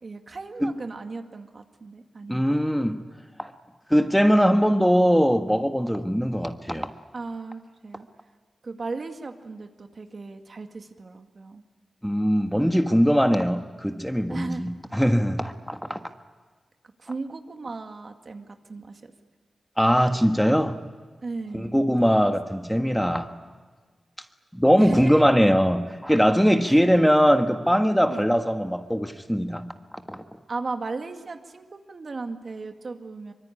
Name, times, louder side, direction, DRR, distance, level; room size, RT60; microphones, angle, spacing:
voice 1, 0.0-2.7 7.1-8.1 8.6-11.6 14.3-14.6 17.0-19.1 21.2-22.3 24.8-25.1 26.6-26.8 28.1-28.3 30.5-33.3, right 3 dB, 55° right, 6 dB, 2.0 m, -36 dB
voice 2, 2.3-3.0 3.4-3.5 3.9-6.9 12.0-16.0 19.8-20.7 21.5-23.3 24.5-29.7 30.1-30.2, equal, ahead, 7 dB, 1.4 m, -21 dB
24.5 x 23.5 x 10.0 m, 1.4 s
wide cardioid pair, 75°, 0 cm